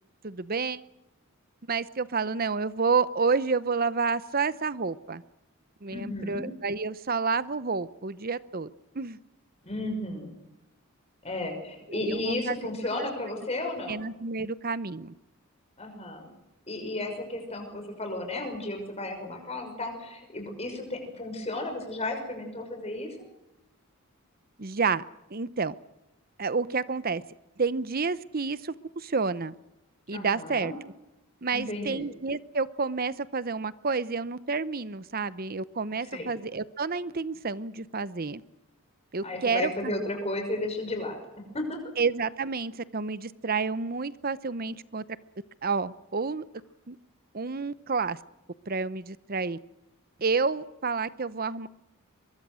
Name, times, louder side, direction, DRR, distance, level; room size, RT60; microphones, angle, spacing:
voice 1, 0.2-0.8 1.7-5.2 5.8-8.7 8.9-9.2 11.9-12.6 13.9-15.1 24.6-25.0 25.3-25.7 26.4-27.2 27.6-29.6 30.1-30.7 31.4-38.4 39.1-39.9 42.0-45.0 45.6-46.4 46.9-47.0 47.3-48.2 48.7-49.6 50.2-51.7, right 4 dB, 40° right, 16 dB, 0.8 m, -29 dB
voice 2, 5.9-6.4 9.6-10.3 11.2-14.0 15.8-16.3 16.7-23.2 30.1-30.7 31.5-32.1 36.1-36.3 39.2-41.2 41.5-41.8, left 2 dB, 30° left, 4 dB, 6.0 m, -33 dB
24.0 x 22.5 x 6.4 m, 0.96 s
head